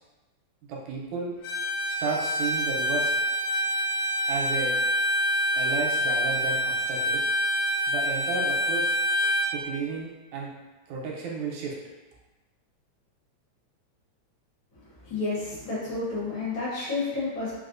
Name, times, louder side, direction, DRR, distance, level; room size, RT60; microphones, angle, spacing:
voice 1, 0.7-1.3 2.0-3.2 4.3-4.7 5.6-7.3 7.9-9.0 9.5-10.5 10.9-11.8, right 4 dB, 85° right, -2 dB, 1.9 m, -33 dB
Bowed string instrument, 1.4-9.5, equal, 85° left, 2.0 m, -26 dB
voice 2, 14.7-17.6, left 3 dB, 60° left, -8 dB, 1.3 m, -31 dB
4.6 x 2.0 x 2.5 m, 1.1 s
omnidirectional pair, 3.3 m